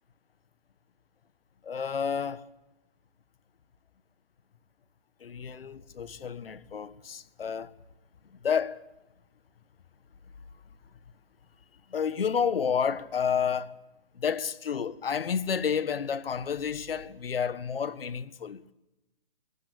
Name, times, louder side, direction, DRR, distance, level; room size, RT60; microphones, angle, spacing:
voice 1, 1.6-2.5 5.2-7.7 8.3-8.8 11.9-13.8 14.1-18.7, left 7 dB, 75° left, 1.5 m, -30 dB
22.0 x 19.5 x 8.8 m
hypercardioid pair, 140°, 29 cm